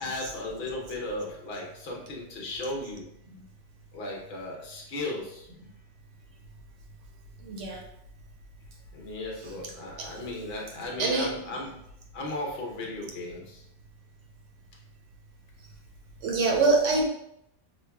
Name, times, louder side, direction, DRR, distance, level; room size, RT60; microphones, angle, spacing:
voice 1, 0.0-3.0 3.9-5.5 8.9-11.7 12.1-13.6, left 2 dB, 60° left, -1 dB, 1.0 m, -36 dB
voice 2, 7.4-7.8 10.0-10.1 11.0-11.3 16.2-17.0, right 3 dB, 80° right, 1 dB, 1.0 m, -24 dB
4.9 x 2.3 x 2.2 m, 0.78 s
omnidirectional pair, 1.2 m